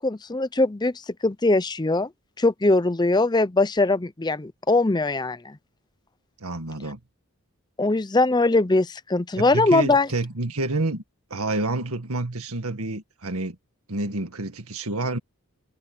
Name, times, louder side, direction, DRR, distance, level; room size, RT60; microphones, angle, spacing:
voice 1, 0.0-2.1 2.4-5.6 7.8-10.1, left 2 dB, 20° left, 0.6 m, -21 dB
voice 2, 6.4-7.0 9.4-11.0 11.3-13.6 13.9-15.2, right 2 dB, 80° right, 1.9 m, -28 dB
head